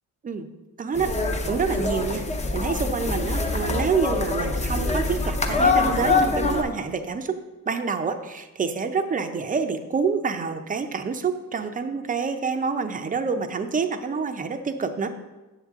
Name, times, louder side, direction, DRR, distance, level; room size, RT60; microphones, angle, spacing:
voice 1, 0.8-1.1 1.5-2.3 2.5-7.4 7.7-15.1, right 5 dB, 25° right, 8 dB, 0.5 m, -27 dB
sound 1, 0.9-6.6, left 3 dB, 20° left, 0.6 m, -24 dB
7.3 x 7.2 x 3.6 m, 1.1 s
cardioid pair, 135°, 35 cm